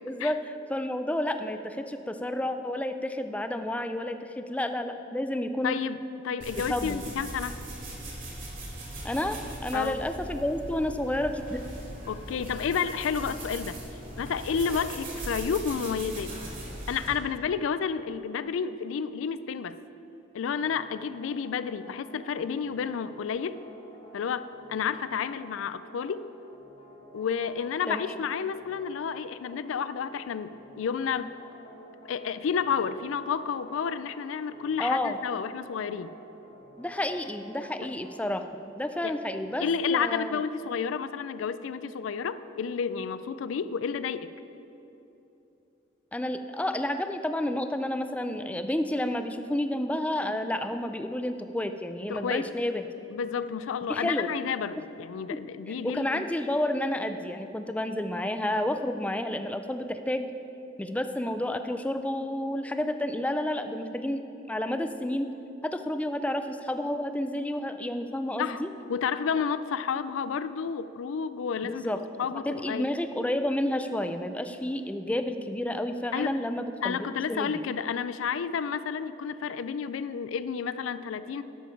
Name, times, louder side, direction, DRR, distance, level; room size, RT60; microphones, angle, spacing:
voice 1, 0.1-5.8 6.7-7.1 9.0-11.6 27.9-28.2 34.8-35.2 36.8-40.4 46.1-52.9 53.9-54.3 55.3-55.4 55.8-60.3 60.8-64.2 64.5-65.3 65.6-68.7 71.6-72.0 72.4-77.0 77.3-77.6, left 1 dB, 5° left, 8 dB, 0.3 m, -30 dB
voice 2, 5.6-7.6 9.7-10.0 12.1-13.8 14.2-16.3 16.9-19.8 20.3-23.6 24.1-26.2 27.1-31.3 32.1-36.1 39.0-39.2 39.6-44.3 52.1-52.5 53.1-56.2 68.4-68.6 68.9-72.9 76.1-76.4 76.8-81.4, left 6 dB, 85° left, 14 dB, 0.4 m, -31 dB
sound 1, 6.4-17.1, right 1 dB, 45° right, 2.3 m, -40 dB
sound 2, 20.5-38.4, equal, 30° left, 1.4 m, -52 dB
11.0 x 7.1 x 4.6 m, 3.0 s
head